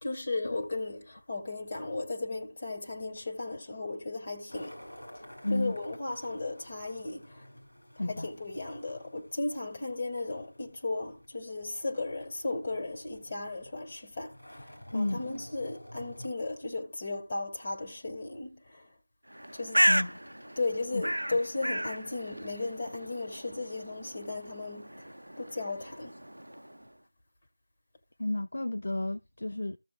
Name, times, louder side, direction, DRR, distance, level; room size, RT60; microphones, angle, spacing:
voice 1, 0.0-7.5 8.1-18.9 19.5-19.9 20.6-26.2, left 2 dB, 25° left, 1.4 m, -36 dB
sound 1, 4.5-16.3, equal, 65° left, 5.1 m, -52 dB
voice 2, 5.4-5.7 8.0-8.3 14.9-15.4 19.9-20.2 20.9-21.0 28.2-29.8, left 1 dB, 50° left, 0.4 m, -32 dB
Bird, 19.3-26.9, right 1 dB, 80° right, 0.4 m, -33 dB
15.0 x 7.1 x 2.3 m
figure-of-eight pair, 170°, 0 cm